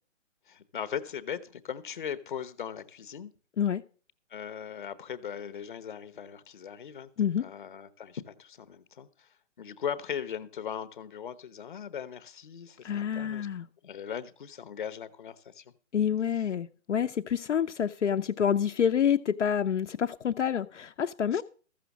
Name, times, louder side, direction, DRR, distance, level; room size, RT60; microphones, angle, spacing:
voice 1, 0.5-3.3 4.3-7.1 7.4-9.3 9.6-13.5 13.8-15.7 16.3-16.4 21.3-21.4, left 8 dB, 40° left, 0.9 m, -39 dB
voice 2, 12.8-13.6 15.9-21.4, left 8 dB, 65° left, 0.8 m, -27 dB
14.0 x 6.3 x 7.0 m
hypercardioid pair, 170°, 38 cm